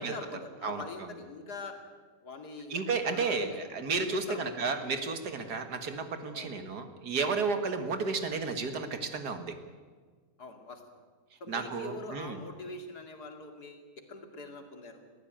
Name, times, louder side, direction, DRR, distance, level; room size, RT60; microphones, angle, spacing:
voice 1, 0.0-1.8 2.2-3.6 4.1-4.7 6.3-6.5 7.7-7.8 10.4-11.0 11.4-15.0, left 3 dB, 75° left, 5 dB, 2.9 m, -44 dB
voice 2, 2.7-9.5 11.5-12.4, right 4 dB, 80° right, 8 dB, 2.2 m, -32 dB
21.0 x 15.5 x 8.9 m, 1.5 s
omnidirectional pair, 1.7 m